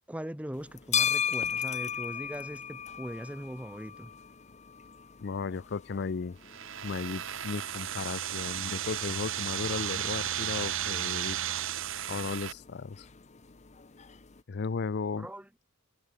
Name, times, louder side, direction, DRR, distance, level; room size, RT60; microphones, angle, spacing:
voice 1, 0.1-4.1 15.2-15.5, equal, 5° right, 1.1 m, -40 dB
sound 1, 0.5-14.4, left 8 dB, 35° left, 0.8 m, -38 dB
voice 2, 5.2-6.4 6.8-11.4 12.1-13.1 14.5-15.3, left 5 dB, 50° left, 0.5 m, -35 dB
sound 2, 6.4-12.5, right 11 dB, 65° right, 1.2 m, -34 dB
head